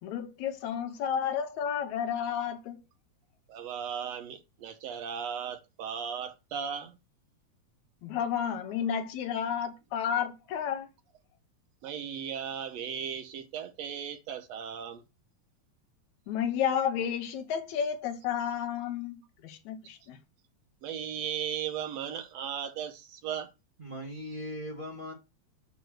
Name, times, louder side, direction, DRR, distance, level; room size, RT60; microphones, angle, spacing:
voice 1, 0.0-2.8 8.0-10.9 16.3-20.2, left 8 dB, 80° left, 2.3 m, -31 dB
voice 2, 3.5-7.0 11.8-15.0 20.8-23.5, right 8 dB, 70° right, 1.9 m, -36 dB
voice 3, 23.8-25.1, equal, 25° right, 1.3 m, -39 dB
9.3 x 3.2 x 6.4 m
omnidirectional pair, 3.3 m